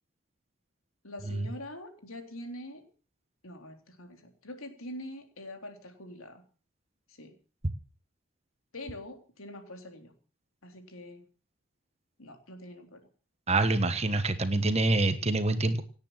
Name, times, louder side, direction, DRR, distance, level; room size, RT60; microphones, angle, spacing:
voice 1, 1.0-2.9 3.4-6.4 7.1-7.3 8.7-10.1 10.6-11.3 12.2-13.0, left 1 dB, 85° left, 5 dB, 3.7 m, -44 dB
voice 2, 13.5-15.8, right 2 dB, 30° right, 9 dB, 1.3 m, -26 dB
18.0 x 9.3 x 7.5 m, 0.39 s
head